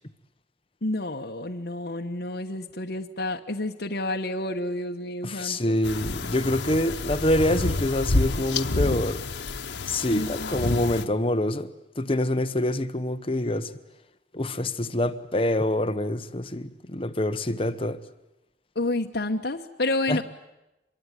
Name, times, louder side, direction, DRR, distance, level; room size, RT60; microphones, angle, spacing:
voice 1, 0.8-5.8 10.1-10.7 18.7-20.2, left 2 dB, 60° left, 1.2 m, -30 dB
voice 2, 5.2-9.2 9.9-11.7 12.0-13.7 14.3-18.0 20.1-20.2, left 1 dB, 30° left, 1.1 m, -26 dB
sound 1, 5.8-11.0, left 2 dB, 85° left, 1.1 m, -28 dB
24.5 x 22.5 x 9.9 m
head